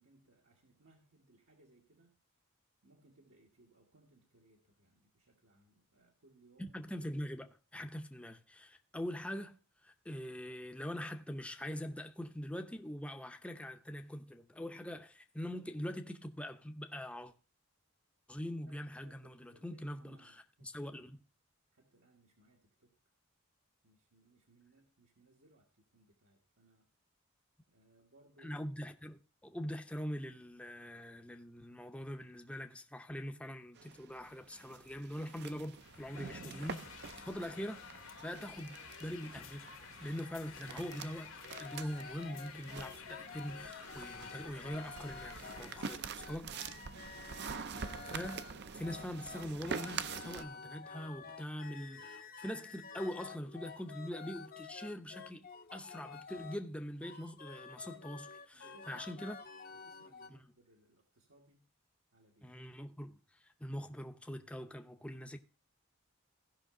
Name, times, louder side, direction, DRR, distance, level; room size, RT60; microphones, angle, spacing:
voice 1, 0.0-2.2 2.8-6.8 18.7-18.8 19.0-21.1 21.7-22.9 23.8-26.9 27.7-28.6 58.5-59.2 59.7-61.6 62.1-62.7, right 2 dB, 75° right, 1.6 m, -67 dB
voice 2, 6.6-9.6 9.8-17.3 18.3-21.2 28.4-37.8 38.2-39.7 40.0-46.6 47.7-48.5 48.7-59.4 60.3-60.4 62.4-65.4, equal, 5° left, 0.6 m, -43 dB
sound 1, 33.8-50.4, right 6 dB, 55° right, 0.5 m, -46 dB
sound 2, 35.8-46.2, left 6 dB, 70° left, 1.2 m, -52 dB
sound 3, 41.4-56.6 57.0-60.3, left 5 dB, 45° left, 0.8 m, -50 dB
16.0 x 5.6 x 3.7 m
head